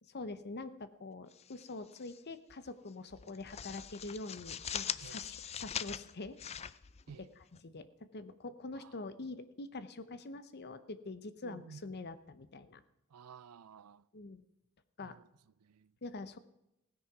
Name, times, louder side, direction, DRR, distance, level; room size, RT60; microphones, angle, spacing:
voice 1, 0.0-6.7 7.2-7.3 7.6-12.8 14.1-14.4 15.0-15.2 16.0-16.4, left 3 dB, 50° left, 0.8 m, -45 dB
sound 1, 1.3-2.2 2.5-2.7 3.1-7.6, left 8 dB, 30° left, 0.4 m, -42 dB
voice 2, 11.4-11.8 13.1-14.1 15.0-15.3 15.6-15.9, right 6 dB, 85° right, 0.5 m, -53 dB
16.0 x 9.5 x 6.0 m
head